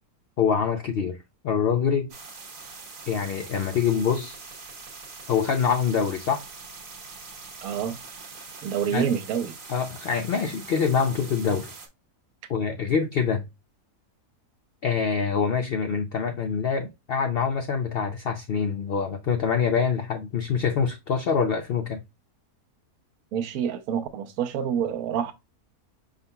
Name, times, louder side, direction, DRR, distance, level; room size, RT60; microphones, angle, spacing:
voice 1, 0.4-1.2 1.4-2.1 3.1-4.4 5.3-6.4 8.9-9.1 9.7-11.7 12.5-13.4 14.8-22.0, left 6 dB, 70° left, 0.5 m, -25 dB
sound 1, 2.1-11.9, right 4 dB, 45° right, 1.1 m, -43 dB
voice 2, 7.6-8.0 8.6-9.5 23.3-25.3, right 8 dB, 70° right, 1.1 m, -27 dB
5.3 x 3.7 x 2.2 m
omnidirectional pair, 1.7 m